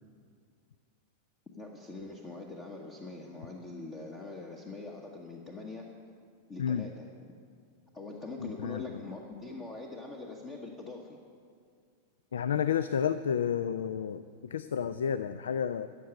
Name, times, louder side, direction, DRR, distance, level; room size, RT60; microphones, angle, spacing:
voice 1, 1.6-5.8 6.5-7.3 7.9-11.2, left 3 dB, 25° left, 1 dB, 1.2 m, -43 dB
voice 2, 8.4-8.8 12.3-15.9, left 8 dB, 65° left, 13 dB, 0.4 m, -31 dB
15.0 x 6.7 x 8.6 m, 2.2 s
figure-of-eight pair, 90°, 0 cm